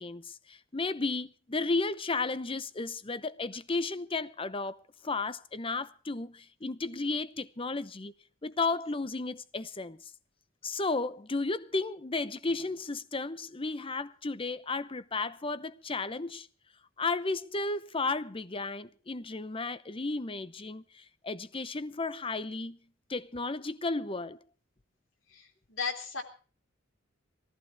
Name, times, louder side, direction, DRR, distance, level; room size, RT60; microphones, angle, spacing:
voice 1, 0.0-8.1 8.4-10.1 10.6-16.5 17.0-22.8 23.1-24.4, left 3 dB, 25° left, 0.8 m, -33 dB
voice 2, 25.3-26.2, left 5 dB, 75° left, 3.5 m, -36 dB
18.5 x 14.5 x 4.8 m
head